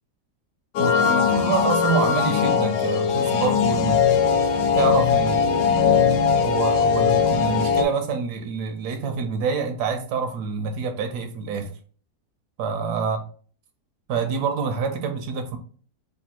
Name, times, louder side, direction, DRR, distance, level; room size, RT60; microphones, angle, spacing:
sound 1, 0.8-7.8, left 7 dB, 80° left, 1.2 m, -20 dB
voice 1, 0.8-4.4 4.7-11.7 12.6-13.2 14.1-15.6, right 5 dB, 80° right, 1.2 m, -27 dB
3.3 x 2.5 x 4.3 m
omnidirectional pair, 1.8 m